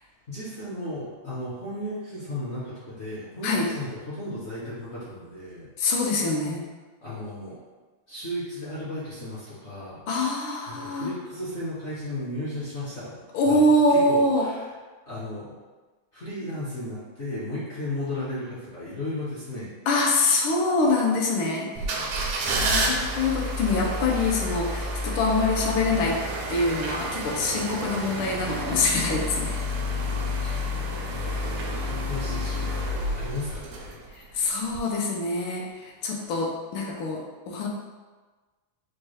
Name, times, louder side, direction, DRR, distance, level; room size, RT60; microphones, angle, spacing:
voice 1, 0.3-5.7 7.0-7.6 8.1-10.0 10.7-14.7 15.1-15.5 16.1-19.7 30.7-34.0, left 1 dB, 55° left, -10 dB, 0.7 m, -35 dB
voice 2, 5.8-6.6 10.1-11.1 13.3-14.5 19.9-21.7 22.6-26.2 26.5-29.6 30.4-30.6 34.3-37.7, left 2 dB, 80° left, -1 dB, 1.4 m, -24 dB
sound 1, 21.8-34.2 34.7-34.8, equal, 80° right, 0.9 m, -29 dB
4.3 x 2.2 x 3.1 m, 1.3 s
omnidirectional pair, 2.2 m